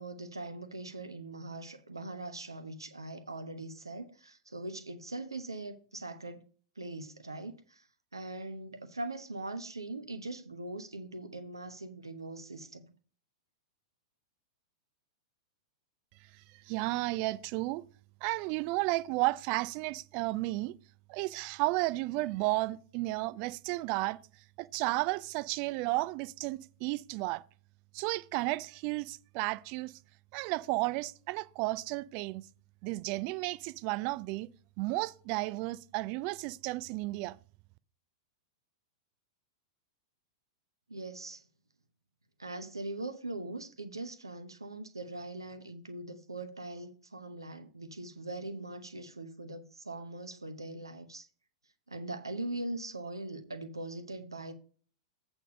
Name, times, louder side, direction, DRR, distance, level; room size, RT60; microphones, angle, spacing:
voice 1, 0.0-6.5 6.8-12.9 40.9-41.4 42.4-51.3 51.9-54.5, right 2 dB, 80° right, 0.9 m, -41 dB
voice 2, 16.5-17.8 18.2-20.8 21.1-24.2 24.6-27.4 27.9-30.0 30.3-32.4 32.8-34.5 34.8-37.4, right 21 dB, 40° right, 0.4 m, -33 dB
8.3 x 4.4 x 6.7 m
figure-of-eight pair, 95°, 2 cm